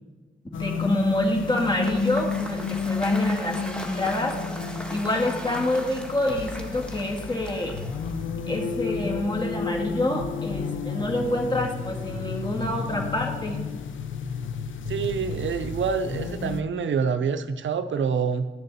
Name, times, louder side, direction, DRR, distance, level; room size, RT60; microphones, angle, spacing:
sound 1, 0.5-16.6, left 5 dB, 85° left, 0.6 m, -31 dB
voice 1, 0.5-4.4 4.9-7.8 8.5-13.6, left 1 dB, 25° left, 0 dB, 2.0 m, -27 dB
Cheering / Applause / Crowd, 1.3-8.4, equal, 5° left, 1.4 m, -39 dB
voice 2, 14.9-18.5, right 6 dB, 80° right, 10 dB, 0.5 m, -26 dB
10.5 x 6.6 x 4.1 m, 1.3 s
cardioid pair, 55°, 19 cm